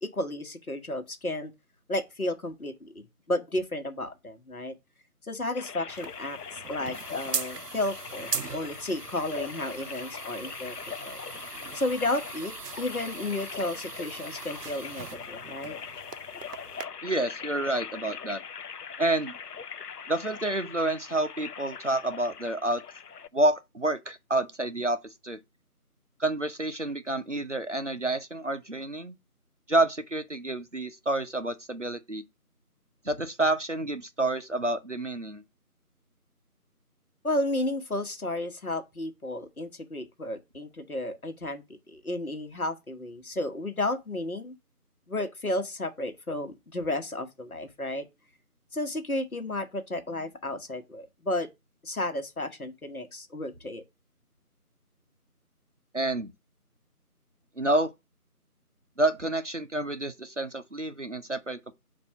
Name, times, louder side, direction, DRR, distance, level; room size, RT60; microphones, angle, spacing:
voice 1, 0.0-1.5 1.9-4.7 5.2-10.7 11.0-11.2 11.7-15.8 37.2-44.5 45.1-48.1 48.7-51.5 51.8-53.8, left 1 dB, 65° left, 1.3 m, -32 dB
sound 1, 5.5-23.3, left 7 dB, 85° left, 0.6 m, -41 dB
sound 2, 5.9-16.9, right 6 dB, 90° right, 0.7 m, -40 dB
voice 2, 17.0-18.4 19.0-19.4 20.1-22.8 23.3-25.4 26.2-29.1 29.7-32.2 33.0-35.4 55.9-56.3 57.6-57.9 59.0-61.7, right 2 dB, 50° right, 0.6 m, -29 dB
6.8 x 2.7 x 5.6 m
figure-of-eight pair, 175°, 46 cm